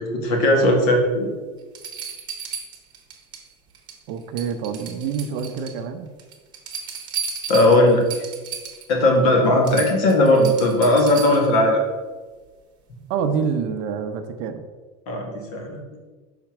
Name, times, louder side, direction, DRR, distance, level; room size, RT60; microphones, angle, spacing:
voice 1, 0.0-1.3 7.5-8.2 8.9-11.8 15.1-15.8, left 1 dB, 60° left, 1 dB, 1.8 m, -18 dB
sound 1, 1.0-1.1 1.7-3.5 3.7-4.1 4.4-5.8 6.2-8.9 9.3-9.4 9.6-11.6 13.2-13.3, right 6 dB, 20° right, 1.1 m, -34 dB
voice 2, 4.1-6.1 13.1-14.7, right 6 dB, 50° right, 7 dB, 0.7 m, -27 dB
5.8 x 4.3 x 5.9 m, 1.3 s
supercardioid pair, 170°, 21 cm